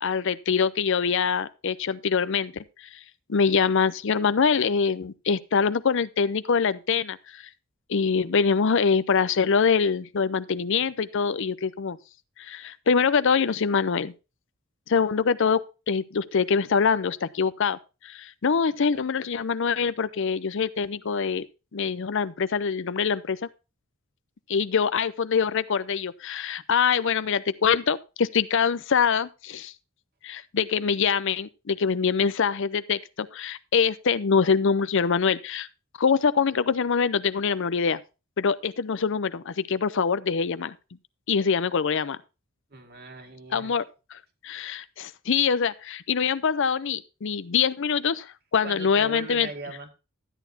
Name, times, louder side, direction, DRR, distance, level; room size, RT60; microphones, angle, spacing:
voice 1, 0.0-3.0 3.3-7.4 7.9-12.0 12.4-14.1 14.9-21.5 21.7-23.4 24.5-29.7 30.2-35.7 36.0-38.0 38.4-40.8 41.3-42.2 43.5-49.5, left 6 dB, 60° left, 0.6 m, -24 dB
voice 2, 42.7-43.7 48.6-49.9, right 2 dB, 50° right, 2.1 m, -39 dB
13.0 x 9.3 x 2.7 m
head